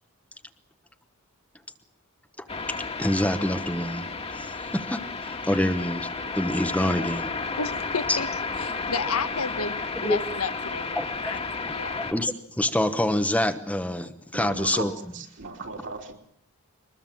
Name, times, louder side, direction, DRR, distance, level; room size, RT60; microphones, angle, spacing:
sound 1, 2.5-12.1, left 4 dB, 25° left, 1.8 m, -32 dB
voice 1, 3.0-6.1 6.3-7.3 8.1-8.2 10.0-10.2 11.0-11.1 12.0-14.9, left 1 dB, 5° left, 1.0 m, -26 dB
voice 2, 6.8-7.1 7.6-8.3 8.6-11.4 11.7-12.0, left 4 dB, 80° left, 1.5 m, -32 dB
voice 3, 14.3-16.1, right 3 dB, 55° right, 3.5 m, -36 dB
23.5 x 20.5 x 7.6 m
head